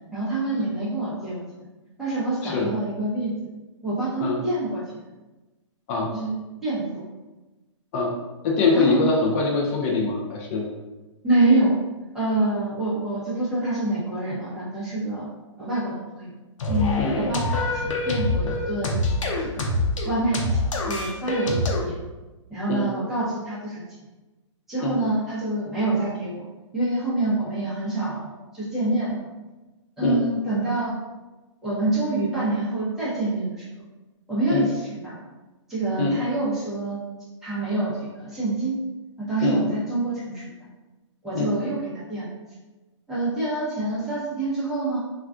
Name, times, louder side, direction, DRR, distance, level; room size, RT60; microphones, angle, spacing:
voice 1, 0.1-1.4 2.0-3.3 3.8-4.8 6.1-7.0 8.7-9.0 11.2-11.8 12.1-15.3 15.6-16.3 16.7-19.0 19.4-20.4 20.8-22.0 22.5-23.8 24.7-26.4 26.7-29.2 30.0-30.9 31.6-33.6 34.3-35.2 35.7-37.0 37.4-38.8 39.2-40.5 41.2-42.3 43.1-45.0, right 2 dB, ahead, -9 dB, 0.7 m, -26 dB
voice 2, 2.4-2.7 4.2-4.4 5.9-6.1 7.9-8.1 8.4-10.7 17.0-17.2 22.7-22.8 24.8-25.0 30.0-30.2 34.5-34.7 36.0-36.2 39.4-39.6 41.3-41.5, left 3 dB, 30° left, -2 dB, 0.4 m, -23 dB
sound 1, 16.6-21.8, left 2 dB, 80° left, 0.6 m, -25 dB
2.3 x 2.3 x 3.6 m, 1.1 s
hypercardioid pair, 155°, 16 cm